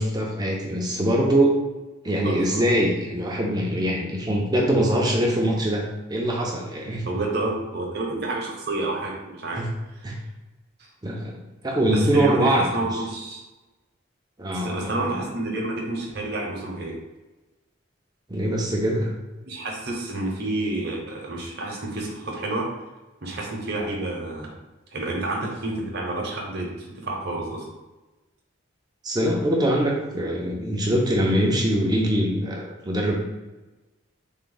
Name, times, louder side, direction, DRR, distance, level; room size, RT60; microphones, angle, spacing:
voice 1, 0.0-1.6 2.0-7.1 9.6-9.7 10.0-10.1 11.0-11.4 11.6-12.6 12.9-13.0 14.4-15.0 18.3-19.1 29.0-33.1, right 1 dB, 20° right, -1 dB, 0.5 m, -23 dB
voice 2, 2.2-2.6 7.1-9.6 11.8-13.4 14.5-17.0 19.5-22.7 23.2-24.5 24.9-27.7, right 2 dB, 50° right, -1 dB, 0.8 m, -29 dB
3.5 x 2.2 x 3.8 m, 1.1 s
head